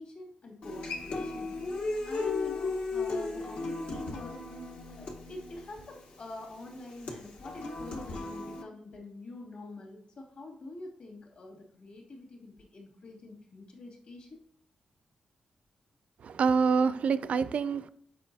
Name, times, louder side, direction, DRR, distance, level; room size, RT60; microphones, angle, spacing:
voice 1, 0.0-1.6 2.0-4.4 5.0-14.4, left 2 dB, 65° left, 2.4 m, -45 dB
Human voice / Acoustic guitar, 0.6-8.6, left 3 dB, 80° left, 1.2 m, -36 dB
voice 2, 16.2-17.9, right 5 dB, 65° right, 0.4 m, -26 dB
7.5 x 5.2 x 2.7 m
cardioid pair, 100°, 2 cm